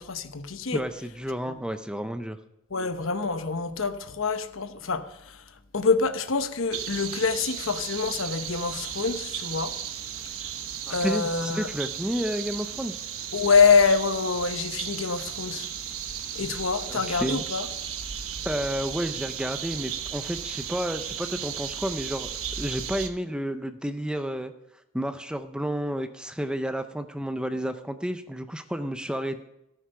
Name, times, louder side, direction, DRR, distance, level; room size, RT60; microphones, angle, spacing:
voice 1, 0.0-0.8 1.5-1.6 2.7-5.4 5.7-9.8 10.9-11.7 13.3-15.7 16.3-17.7, left 5 dB, 70° left, 0.9 m, -25 dB
voice 2, 0.7-2.4 10.9-13.0 16.9-17.5 18.4-22.3 22.6-24.5 24.9-29.4, equal, 5° right, 0.5 m, -31 dB
sound 1, 6.7-23.1, right 9 dB, 85° right, 1.0 m, -35 dB
14.0 x 9.5 x 5.7 m
head